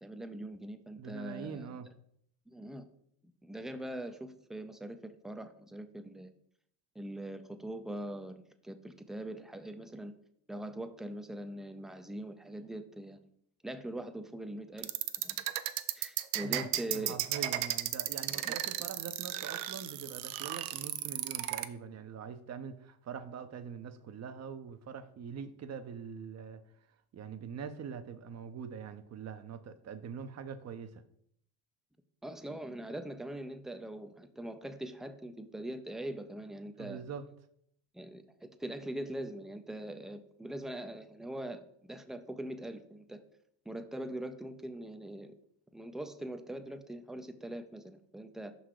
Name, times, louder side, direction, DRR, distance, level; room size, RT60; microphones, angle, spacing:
voice 1, 0.0-1.7 2.5-2.9 3.4-6.3 7.0-10.1 10.5-13.3 13.6-14.9 15.2-15.4 15.9-17.2 18.3-18.5 32.2-37.0 37.9-43.2 43.7-45.3 45.7-48.5, right 1 dB, ahead, 0.4 m, -42 dB
voice 2, 1.0-1.9 16.4-26.6 27.1-31.0 36.8-37.2, right 6 dB, 35° right, 0.6 m, -43 dB
sound 1, 14.8-21.7, right 14 dB, 90° right, 0.5 m, -34 dB
5.5 x 4.0 x 4.7 m
supercardioid pair, 85°, 44 cm